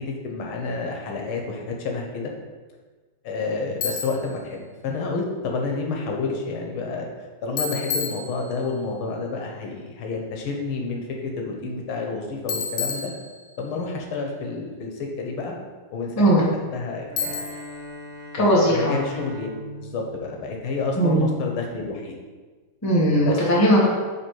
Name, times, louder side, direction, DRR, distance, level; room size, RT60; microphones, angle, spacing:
voice 1, 0.0-2.3 3.2-7.1 7.4-13.1 13.6-15.5 15.9-16.5 16.7-17.6 18.4-19.5 19.8-22.2 23.2-23.4, left 4 dB, 85° left, 1 dB, 1.7 m, -29 dB
Bicycle, 3.8-4.3 7.6-8.8 12.5-13.7 17.2-17.8, left 5 dB, 60° left, 1.0 m, -30 dB
Bowed string instrument, 17.1-21.4, equal, 55° right, 0.9 m, -40 dB
voice 2, 18.3-18.9 21.0-21.2 22.8-23.9, equal, 10° left, -4 dB, 0.8 m, -18 dB
6.3 x 3.4 x 4.6 m, 1.4 s
omnidirectional pair, 2.2 m